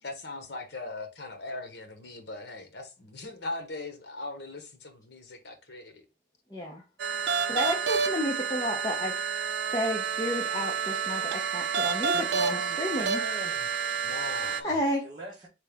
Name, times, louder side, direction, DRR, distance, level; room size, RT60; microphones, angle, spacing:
voice 1, 0.0-6.0 14.0-14.7, left 2 dB, 75° left, 1.1 m, -40 dB
voice 2, 6.5-6.8 7.5-9.3 9.7-13.2 14.6-15.0, left 1 dB, 20° left, 0.8 m, -31 dB
sound 1, 7.0-14.6, right 6 dB, 75° right, 0.5 m, -29 dB
voice 3, 11.9-13.9 15.0-15.5, right 1 dB, 25° right, 1.2 m, -43 dB
4.6 x 3.3 x 3.5 m
head